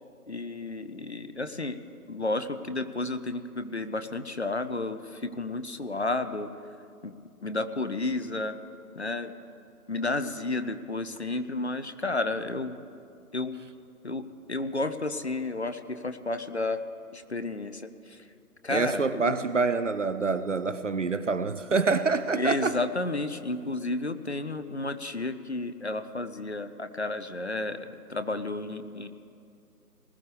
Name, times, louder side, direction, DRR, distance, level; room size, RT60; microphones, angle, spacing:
voice 1, 0.3-1.8 2.1-6.5 7.0-7.1 7.4-8.6 9.0-9.3 9.9-12.8 13.3-13.6 14.0-16.8 17.1-18.3 18.6-19.3 22.3-29.1, left 2 dB, 45° left, 11 dB, 0.6 m, -32 dB
voice 2, 18.7-22.8, right 4 dB, 55° right, 13 dB, 0.5 m, -26 dB
20.0 x 13.5 x 3.4 m, 2.4 s
figure-of-eight pair, 165°, 46 cm